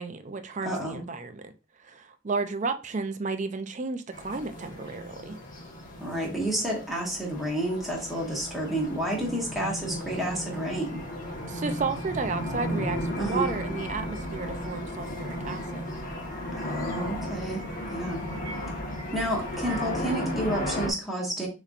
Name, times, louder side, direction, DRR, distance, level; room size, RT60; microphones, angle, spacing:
voice 1, 0.0-1.5 1.8-5.4 11.5-15.9, right 4 dB, 40° right, 0.5 m, -33 dB
voice 2, 0.6-1.0 6.0-11.0 13.2-13.5 16.5-18.2 19.1-21.5, right 1 dB, ahead, 1.6 m, -30 dB
sound 1, 4.1-20.9, left 1 dB, 45° left, 1.3 m, -35 dB
6.4 x 3.1 x 2.5 m
head